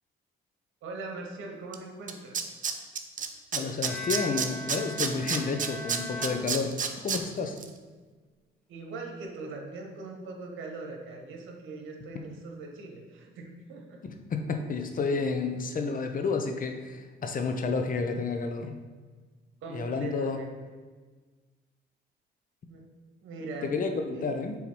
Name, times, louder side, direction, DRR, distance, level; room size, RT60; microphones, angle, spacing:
voice 1, 0.8-2.4 8.7-14.0 19.6-20.6 22.7-22.8 23.2-23.8 24.1-24.3, right 3 dB, 85° right, 1 dB, 1.3 m, -41 dB
Tools, 1.7-1.8 2.1-3.3 3.5-7.2 7.6-7.7, right 7 dB, 40° right, 0.6 m, -29 dB
voice 2, 3.5-7.6 12.1-12.2 14.0-18.8 19.7-20.4 23.6-24.6, left 4 dB, 45° left, 5 dB, 0.8 m, -31 dB
Bowed string instrument, 3.8-7.2, left 1 dB, 5° left, 1.1 m, -40 dB
7.2 x 3.8 x 4.6 m, 1.4 s
cardioid pair, 90°, 20 cm